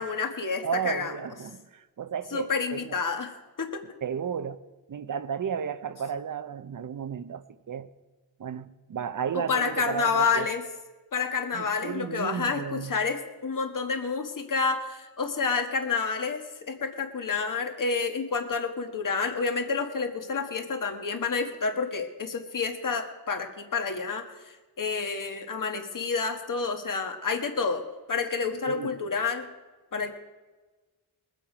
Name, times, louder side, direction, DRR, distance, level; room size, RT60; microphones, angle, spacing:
voice 1, 0.0-1.1 2.3-3.3 3.6-3.8 9.3-10.6 11.1-29.4 29.9-30.1, left 5 dB, 50° left, 1.5 m, -29 dB
voice 2, 0.6-3.0 4.0-4.6 4.9-7.9 8.4-10.5 11.5-12.9 28.7-29.0, right 7 dB, 50° right, 0.7 m, -33 dB
21.0 x 7.6 x 5.0 m
cardioid pair, 75°, 41 cm